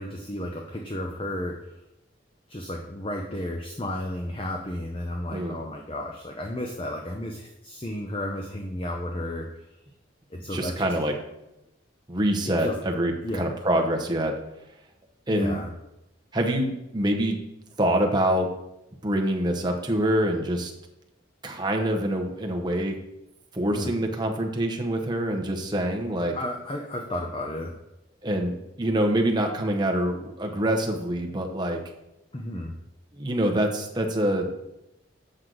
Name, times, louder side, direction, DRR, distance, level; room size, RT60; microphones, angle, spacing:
voice 1, 0.0-1.5 2.5-9.5 10.3-10.9 12.6-12.8 13.2-13.5 15.3-15.7 23.7-23.9 26.3-27.7 32.3-32.7, left 1 dB, 25° left, 2 dB, 0.6 m, -33 dB
voice 2, 10.4-11.1 12.1-14.4 15.3-15.6 16.3-17.4 17.8-18.5 19.0-20.7 21.4-22.9 23.5-26.4 28.2-31.8 33.1-34.5, right 1 dB, 20° right, 2 dB, 0.9 m, -25 dB
7.7 x 6.3 x 3.9 m, 0.89 s
head